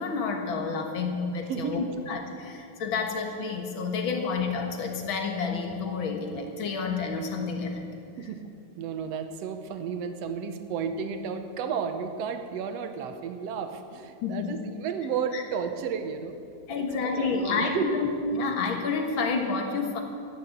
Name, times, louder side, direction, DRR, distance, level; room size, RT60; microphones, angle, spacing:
voice 1, 0.0-7.9 14.2-14.6 15.3-15.4 16.7-20.0, left 4 dB, 50° left, 3 dB, 1.9 m, -29 dB
voice 2, 8.8-16.4 16.7-18.0, right 6 dB, 65° right, 8 dB, 1.9 m, -32 dB
14.0 x 10.5 x 7.9 m, 2.4 s
omnidirectional pair, 3.3 m